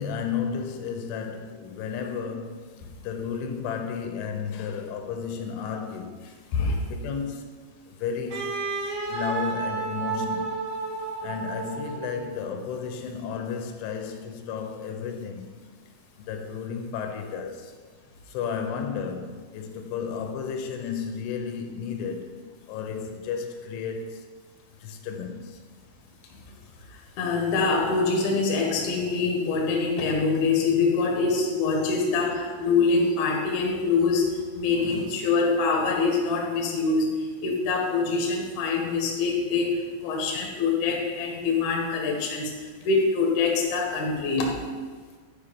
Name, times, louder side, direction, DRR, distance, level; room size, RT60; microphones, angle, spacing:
voice 1, 0.0-2.7 3.0-6.2 6.7-7.5 7.9-10.5 11.2-15.5 16.3-17.7 18.3-22.4 22.7-24.3 24.8-25.6 34.7-35.1, left 6 dB, 85° left, 3.3 m, -33 dB
voice 2, 6.5-6.9 26.3-26.4 26.9-44.6, left 4 dB, 65° left, 2.0 m, -25 dB
Wind instrument woodwind instrument, 8.3-12.4, right 4 dB, 75° right, 4.1 m, -31 dB
10.5 x 5.1 x 5.2 m
omnidirectional pair, 5.5 m